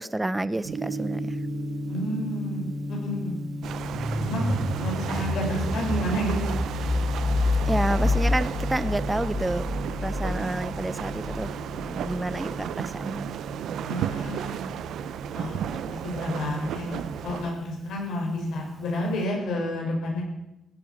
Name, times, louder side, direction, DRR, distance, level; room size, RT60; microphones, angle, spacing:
voice 1, 0.0-1.4 7.7-9.7 10.0-11.6 11.9-13.3, right 1 dB, 10° right, 15 dB, 0.7 m, -29 dB
Gong, 0.6-19.2, left 1 dB, 55° right, 2.1 m, -37 dB
voice 2, 1.9-3.4 4.2-6.4 13.8-14.7 15.3-20.2, equal, 75° left, -1 dB, 7.1 m, -30 dB
sound 1, 3.6-17.5, right 9 dB, 75° right, 0.8 m, -34 dB
sound 2, 3.9-12.6, left 3 dB, 25° left, 2.3 m, -28 dB
16.0 x 11.0 x 7.5 m, 0.95 s
cardioid pair, 90°, 0 cm